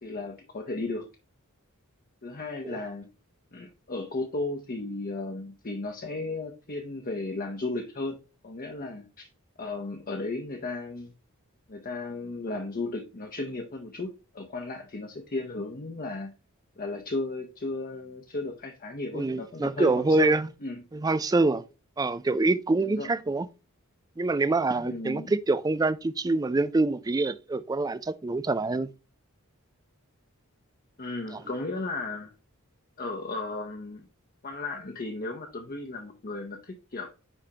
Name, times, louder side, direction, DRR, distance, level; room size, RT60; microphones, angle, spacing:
voice 1, 0.0-1.1 2.2-3.1 3.5-8.2 8.4-9.3 9.6-11.1 11.7-16.3 16.8-20.8 22.8-23.1 24.8-25.3 31.0-32.3 33.0-34.1 34.4-37.1, left 2 dB, 40° left, 0.8 m, -35 dB
voice 2, 19.1-20.5 20.9-21.6 22.0-23.5 24.2-28.9 31.3-31.4, right 3 dB, 15° right, 0.3 m, -25 dB
9.8 x 3.5 x 2.8 m
head